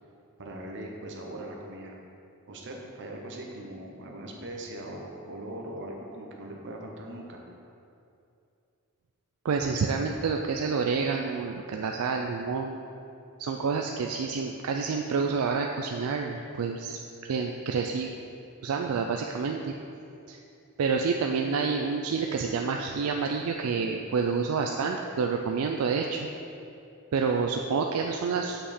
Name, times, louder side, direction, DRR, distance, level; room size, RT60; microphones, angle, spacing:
voice 1, 0.4-1.9 2.5-7.4, right 1 dB, 55° right, 0 dB, 1.0 m, -40 dB
voice 2, 9.4-12.8 13.4-17.0 17.3-18.1 18.6-19.7 20.3-20.4 20.8-26.2 27.1-28.7, right 5 dB, 75° right, 2 dB, 0.4 m, -28 dB
7.1 x 5.5 x 4.3 m, 2.6 s
head